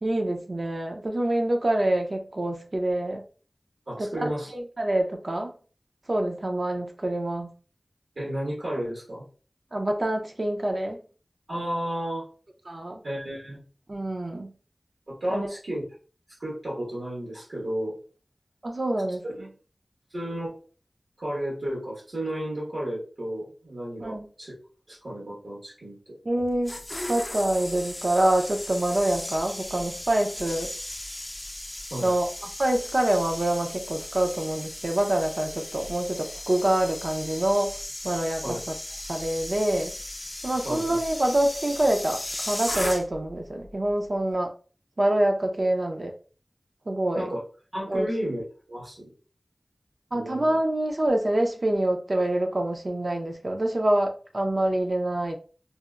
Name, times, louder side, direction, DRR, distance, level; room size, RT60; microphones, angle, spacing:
voice 1, 0.0-3.2 4.2-4.3 4.5-5.5 6.1-7.5 9.7-11.0 12.7-13.0 13.9-14.5 15.3-15.5 18.6-19.5 24.0-24.3 26.2-26.8 27.1-30.7 32.0-37.7 38.0-38.4 39.1-39.9 40.4-44.5 45.0-46.1 46.9-47.2 47.9-48.1 50.1-55.4, right 1 dB, 55° right, 0.6 m, -26 dB
voice 2, 3.9-4.5 8.1-9.2 11.5-12.2 13.0-13.6 15.1-15.8 16.4-18.0 19.4-19.5 20.1-20.6 21.2-24.5 24.9-26.0 31.9-32.1 38.4-38.6 40.6-41.0 47.1-47.4 47.7-48.4 48.7-49.1 50.1-50.6, right 1 dB, 85° right, 1.4 m, -32 dB
sound 1, 26.4-43.3 43.6-43.9, left 1 dB, 35° left, 0.5 m, -36 dB
4.1 x 2.1 x 2.4 m
wide cardioid pair, 45°, 0 cm